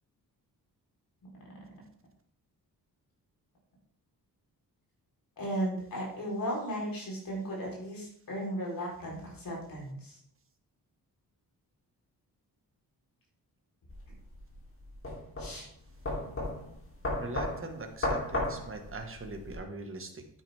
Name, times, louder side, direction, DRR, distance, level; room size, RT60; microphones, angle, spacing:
voice 1, 5.4-10.2 15.4-15.7, equal, 65° left, -2 dB, 3.9 m, -35 dB
sound 1, 13.9-19.6, left 2 dB, 35° left, 3.3 m, -35 dB
voice 2, 17.2-20.4, right 3 dB, 35° right, 5 dB, 1.5 m, -41 dB
9.2 x 9.0 x 3.5 m, 0.64 s
wide cardioid pair, 130°, 37 cm